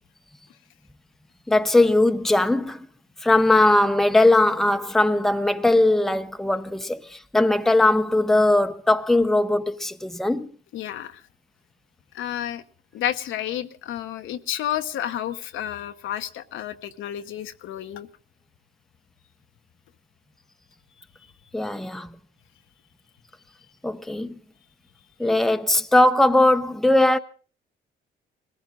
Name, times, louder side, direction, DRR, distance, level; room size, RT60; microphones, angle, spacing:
voice 1, 1.5-2.9 3.2-10.5 21.5-22.1 23.8-24.3 25.2-27.2, left 2 dB, ahead, 0.7 m, -19 dB
voice 2, 10.7-11.2 12.1-12.6 12.9-18.1, left 11 dB, 80° left, 1.0 m, -31 dB
21.0 x 15.5 x 3.8 m
cardioid pair, 90°, 20 cm